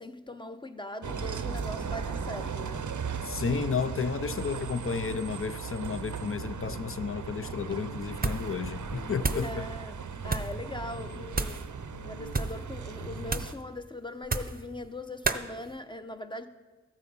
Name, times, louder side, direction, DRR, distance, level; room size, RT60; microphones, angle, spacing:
voice 1, 0.0-2.9 9.4-11.8 12.0-16.5, left 1 dB, 15° left, 0.8 m, -40 dB
Bus, 1.0-13.5, right 6 dB, 85° right, 0.6 m, -37 dB
voice 2, 3.3-9.6, left 5 dB, 45° left, 0.5 m, -32 dB
sound 1, 6.5-7.0 7.5-8.0 8.6-9.2 10.8-11.4 11.9-12.4 13.0-13.5, left 3 dB, 80° left, 0.8 m, -45 dB
sound 2, 8.2-8.6 8.8-9.5 10.2-10.6 11.3-11.7 12.2-12.6 13.3-13.6 14.2-14.6 15.2-15.5, right 3 dB, 30° right, 0.7 m, -31 dB
13.5 x 8.2 x 5.4 m
wide cardioid pair, 40°, 30 cm